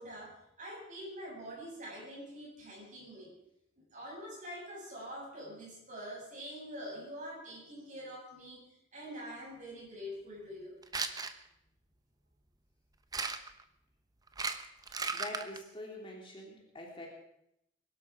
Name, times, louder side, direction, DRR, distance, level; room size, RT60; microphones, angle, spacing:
voice 1, 0.0-3.3 3.8-10.8, equal, 40° right, -2 dB, 7.6 m, -45 dB
sound 1, 10.8-11.3 13.1-13.6 14.3-15.6, right 4 dB, 20° right, 0.9 m, -35 dB
voice 2, 14.8-17.1, left 1 dB, 25° left, -1 dB, 3.0 m, -45 dB
22.0 x 12.5 x 4.9 m, 0.78 s
head